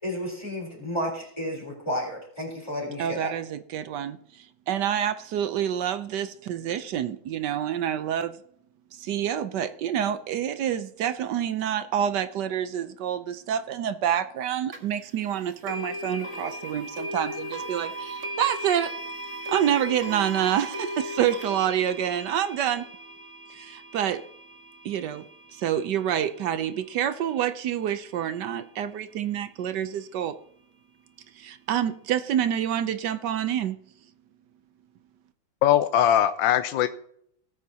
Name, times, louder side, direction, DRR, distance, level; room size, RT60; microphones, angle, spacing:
voice 1, 0.0-3.3, equal, 15° left, -3 dB, 3.9 m, -32 dB
voice 2, 3.0-4.2 4.7-8.3 8.9-19.0 19.5-22.9 23.5-24.2 24.8-25.2 25.6-30.3 31.4-33.8, right 10 dB, 70° right, 12 dB, 1.2 m, -27 dB
sound 1, 14.7-14.8 15.7-26.6, equal, 40° right, 1.5 m, -37 dB
voice 3, 35.6-36.9, left 11 dB, 75° left, 10 dB, 1.3 m, -20 dB
18.5 x 8.4 x 2.8 m, 0.67 s
omnidirectional pair, 2.2 m